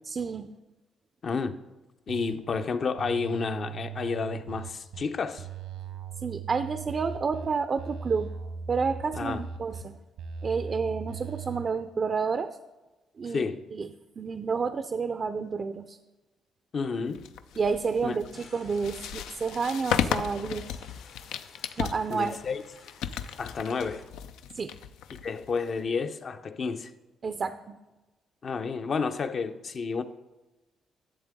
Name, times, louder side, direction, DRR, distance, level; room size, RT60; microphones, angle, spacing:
voice 1, 0.1-0.5 6.2-8.3 8.7-10.0 10.4-12.5 13.2-13.9 14.2-16.0 17.6-20.8 21.8-22.4 24.5-24.7 27.2-27.8, right 5 dB, 40° right, 0.4 m, -30 dB
voice 2, 1.2-1.6 2.1-5.5 9.1-9.4 13.3-13.6 16.7-17.2 18.0-18.1 22.1-22.6 23.4-24.0 25.2-26.9 28.4-30.0, left 5 dB, 50° left, 0.6 m, -30 dB
sound 1, 2.1-2.6 3.0-5.0 5.4-7.5 7.8-9.8 10.2-11.7, right 6 dB, 90° right, 1.2 m, -38 dB
sound 2, 17.2-25.8, left 9 dB, 90° left, 0.4 m, -35 dB
sound 3, 18.3-24.0, left 4 dB, 75° left, 1.5 m, -54 dB
11.0 x 7.5 x 3.6 m
cardioid pair, 90°, 0 cm